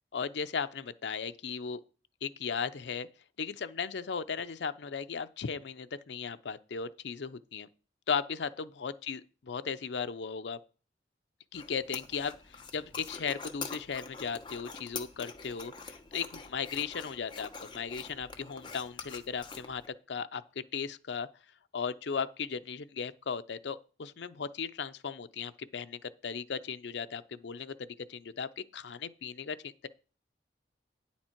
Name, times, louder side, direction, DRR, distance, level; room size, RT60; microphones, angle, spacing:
voice 1, 0.1-1.8 2.2-3.1 3.4-7.7 8.1-10.6 11.5-19.8 20.1-20.4 20.7-21.3 21.7-29.9, left 6 dB, 75° left, 0.5 m, -36 dB
sound 1, 11.5-19.9, left 4 dB, 25° left, 0.9 m, -45 dB
9.5 x 7.2 x 4.4 m
head